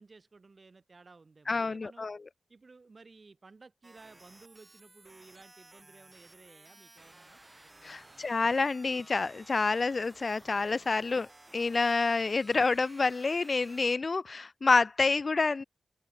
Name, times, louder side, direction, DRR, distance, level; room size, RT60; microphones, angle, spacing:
voice 1, 0.0-2.1 2.5-7.4 7.8-8.3, right 3 dB, 40° right, 4.9 m, -56 dB
voice 2, 1.5-2.2 7.8-11.3 11.5-15.6, left 4 dB, 40° left, 0.5 m, -28 dB
sound 1, 3.8-14.0, right 2 dB, 20° right, 3.4 m, -56 dB
wide cardioid pair, 105°, 0 cm